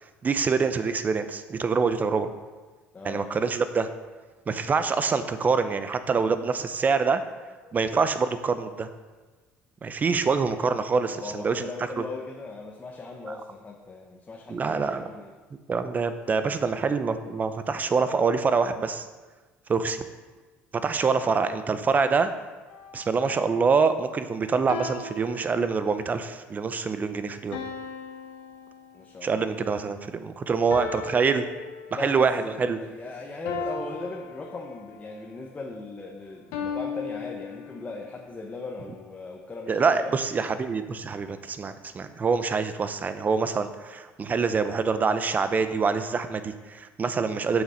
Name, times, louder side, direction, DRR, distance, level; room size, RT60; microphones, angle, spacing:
voice 1, 0.2-2.3 3.0-3.9 4.5-7.2 7.7-8.9 9.8-11.7 12.0-12.1 13.3-13.4 14.5-15.1 15.7-19.1 19.7-20.0 20.8-22.3 22.9-27.6 29.2-31.5 32.0-32.8 39.7-47.6, right 5 dB, 30° right, 11 dB, 0.7 m, -25 dB
voice 2, 2.9-3.3 7.6-7.8 11.1-15.3 28.9-29.5 31.9-40.1, left 3 dB, 25° left, 0 dB, 1.0 m, -38 dB
sound 1, 22.7-23.1 24.7-26.2 27.5-29.3 30.7-32.3 33.4-35.1 36.5-38.1, left 5 dB, 85° left, 1.0 m, -37 dB
7.4 x 6.0 x 5.2 m, 1.3 s
supercardioid pair, 90°, 5 cm